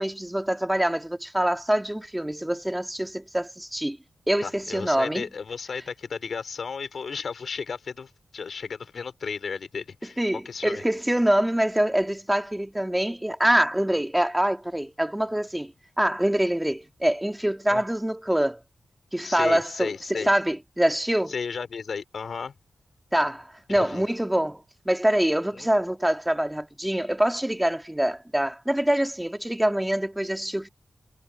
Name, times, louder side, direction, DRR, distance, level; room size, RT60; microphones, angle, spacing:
voice 1, 0.0-4.0 4.3-5.2 10.2-15.7 16.0-18.6 19.1-21.3 23.1-30.7, right 1 dB, 5° right, 2.1 m, -25 dB
voice 2, 4.4-10.2 10.4-10.8 17.7-17.8 19.2-20.3 21.3-22.5 23.7-24.0 25.5-25.7, left 5 dB, 70° left, 3.2 m, -34 dB
wide cardioid pair, 140°, 0 cm